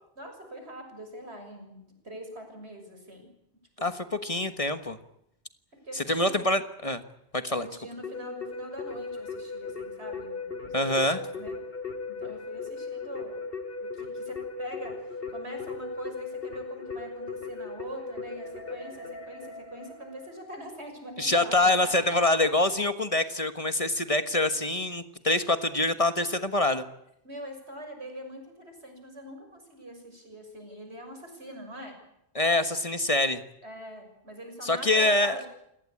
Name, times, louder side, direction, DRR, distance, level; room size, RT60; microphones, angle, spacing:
voice 1, 0.1-3.3 3.8-4.0 5.8-6.4 7.6-11.5 12.1-13.5 13.8-22.0 27.2-32.0 33.6-35.5, equal, 85° right, 5 dB, 6.8 m, -43 dB
voice 2, 3.8-5.0 6.1-7.0 7.3-7.7 10.7-11.2 21.2-26.8 32.3-33.4 34.6-35.4, left 2 dB, 35° left, 10 dB, 1.5 m, -25 dB
Keyboard (musical), 8.0-20.5, left 4 dB, 65° left, 2.9 m, -38 dB
28.0 x 18.5 x 8.7 m, 0.79 s
omnidirectional pair, 1.1 m